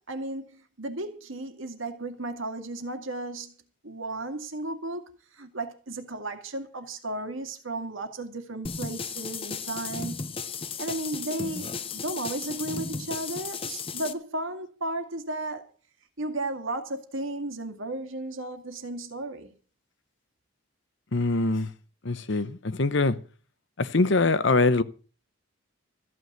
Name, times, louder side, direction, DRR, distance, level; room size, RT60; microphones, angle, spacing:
voice 1, 0.1-3.5 3.8-5.0 5.3-10.2 10.8-15.6 16.2-19.5, right 2 dB, 65° right, 2.1 m, -34 dB
sound 1, 8.7-14.1, left 5 dB, 25° left, 0.7 m, -35 dB
voice 2, 21.1-21.7 22.0-23.2 23.8-24.8, left 3 dB, 55° left, 0.9 m, -23 dB
14.0 x 6.3 x 9.3 m
head